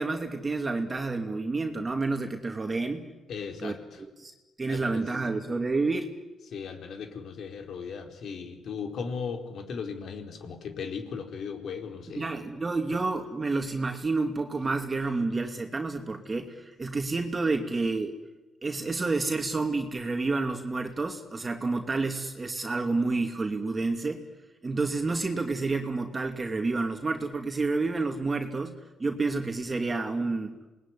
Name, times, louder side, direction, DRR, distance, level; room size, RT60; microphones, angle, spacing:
voice 1, 0.0-3.1 3.6-4.3 4.6-6.1 12.2-18.1 18.6-24.2 24.6-28.7 29.0-30.6, right 3 dB, 25° right, 4 dB, 2.6 m, -29 dB
voice 2, 3.3-4.0 4.7-5.1 6.5-12.3, left 6 dB, 65° left, 4 dB, 4.5 m, -37 dB
27.5 x 20.5 x 9.9 m, 1.1 s
cardioid pair, 90°, 0 cm